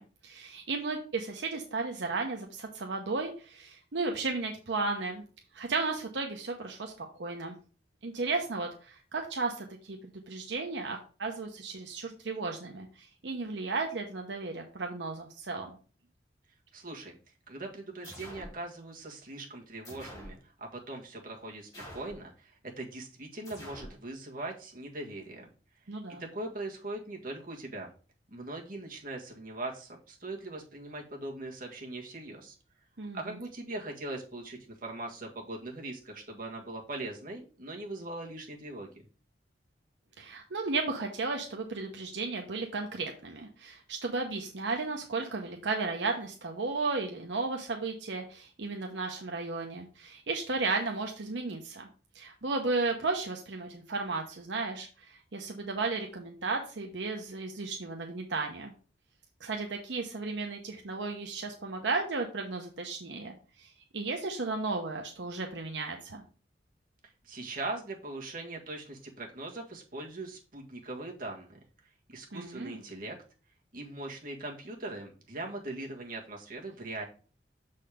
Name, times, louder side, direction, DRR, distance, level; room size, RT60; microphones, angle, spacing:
voice 1, 0.0-5.2 5.5-7.6 8.0-10.0 10.3-15.7 25.9-26.2 33.0-33.2 40.2-51.9 52.1-58.7 59.4-66.2 72.3-72.8, right 3 dB, 80° right, 2 dB, 0.9 m, -34 dB
voice 2, 16.7-17.2 17.5-25.5 25.9-27.9 28.3-32.6 33.1-38.9 67.0-73.2 73.7-77.0, right 2 dB, 50° right, -1 dB, 1.8 m, -41 dB
sound 1, 18.0-18.6 19.8-20.4 21.7-22.2 23.4-24.0, equal, 20° left, 4.2 m, -46 dB
6.7 x 4.2 x 4.9 m, 0.39 s
head